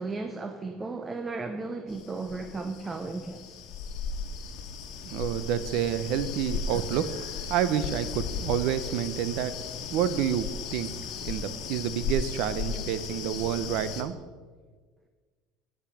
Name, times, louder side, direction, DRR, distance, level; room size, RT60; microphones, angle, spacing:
voice 1, 0.0-3.6, right 3 dB, 15° right, 6 dB, 0.6 m, -35 dB
sound 1, 1.9-14.0, left 5 dB, 50° left, 1.4 m, -36 dB
voice 2, 5.0-9.5 9.9-10.9 11.2-14.1, right 10 dB, 55° right, 13 dB, 0.7 m, -29 dB
8.6 x 8.3 x 6.1 m, 1.5 s
cardioid pair, 160°, 0 cm